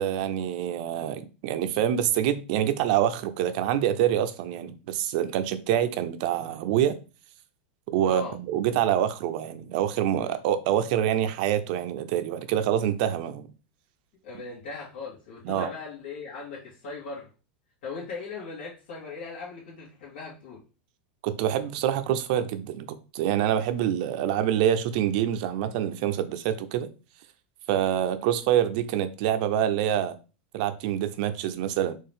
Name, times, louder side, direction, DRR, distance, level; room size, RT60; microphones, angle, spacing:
voice 1, 0.0-7.0 7.9-13.5 15.4-15.7 21.2-26.9 27.7-30.1 30.5-31.9, right 10 dB, 50° right, 0.5 m, -26 dB
voice 2, 8.0-8.4 14.2-17.3 17.8-20.6, left 4 dB, 80° left, 2.1 m, -39 dB
4.5 x 3.0 x 3.6 m
supercardioid pair, 155°, 6 cm